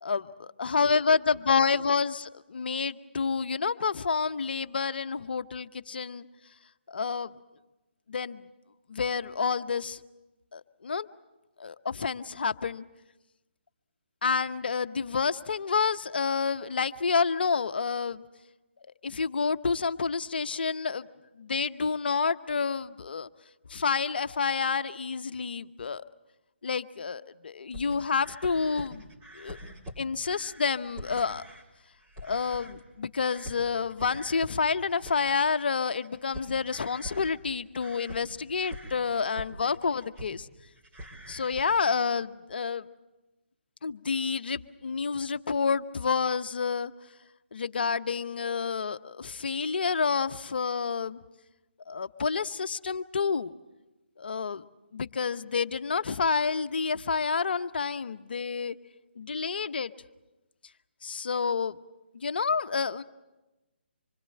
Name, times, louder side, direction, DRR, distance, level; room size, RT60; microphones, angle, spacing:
voice 1, 0.6-6.2 6.9-7.3 8.1-8.4 8.9-10.0 10.5-11.1 11.6-12.8 14.2-18.2 19.0-21.1 21.4-23.3 23.7-26.0 26.6-29.1 29.3-29.6 30.0-31.4 32.2-40.5 41.3-42.8 43.8-46.9 47.5-51.2 51.9-53.5 54.2-54.6 54.9-58.7 59.2-59.9 61.0-61.8 62.1-63.0, left 5 dB, 60° left, 11 dB, 0.9 m, -29 dB
sound 1, 27.7-31.7 32.0-33.0 33.3-40.5 40.8-42.1, equal, 20° right, 3.9 m, -45 dB
26.0 x 24.5 x 7.7 m, 1.1 s
figure-of-eight pair, 145°, 6 cm